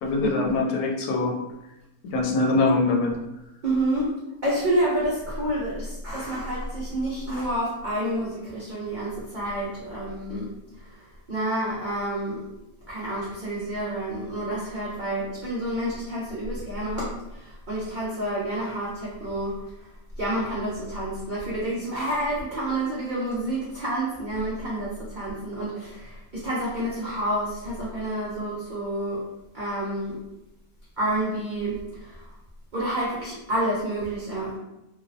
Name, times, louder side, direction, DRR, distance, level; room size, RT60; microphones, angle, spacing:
voice 1, 0.0-1.3 2.1-3.1, left 3 dB, 90° left, 0 dB, 1.1 m, -23 dB
voice 2, 3.6-4.1 4.4-10.5 10.8-11.0 11.3-12.4 12.9-19.6 20.2-29.2 29.5-30.2 31.0-32.2 32.7-34.5, right 1 dB, 75° right, -7 dB, 0.4 m, -29 dB
2.6 x 2.0 x 2.5 m, 0.93 s
omnidirectional pair, 1.6 m